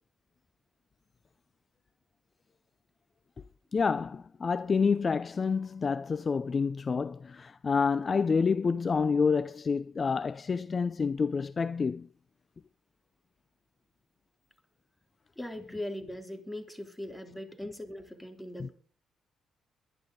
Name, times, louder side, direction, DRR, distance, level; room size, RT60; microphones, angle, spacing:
voice 1, 3.7-12.1 18.6-18.7, left 5 dB, 35° left, 0.6 m, -28 dB
voice 2, 15.4-18.7, left 1 dB, 10° left, 3.3 m, -40 dB
23.0 x 11.0 x 3.9 m
cardioid pair, 90°, 0 cm